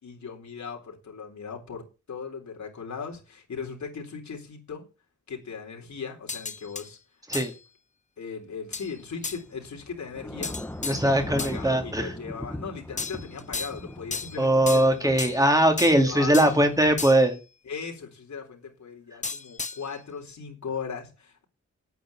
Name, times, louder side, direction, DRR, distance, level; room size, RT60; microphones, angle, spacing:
voice 1, 0.0-4.9 5.3-7.0 7.3-7.4 8.2-15.5 15.8-16.6 17.7-21.4, left 5 dB, 70° left, 4.1 m, -38 dB
sound 1, 6.3-6.9 7.3-7.5 8.7-8.9 9.2-9.4 10.4-11.6 13.0-13.8 14.1-15.4 15.8-16.6 17.0-17.4 19.2-19.9, left 4 dB, 25° left, 0.7 m, -34 dB
Thunder / Rain, 8.7-17.0, left 1 dB, 5° left, 1.2 m, -40 dB
voice 2, 10.8-12.1 14.4-17.4, right 1 dB, 10° right, 2.5 m, -21 dB
9.4 x 8.9 x 7.1 m
wide cardioid pair, 145°, 30 cm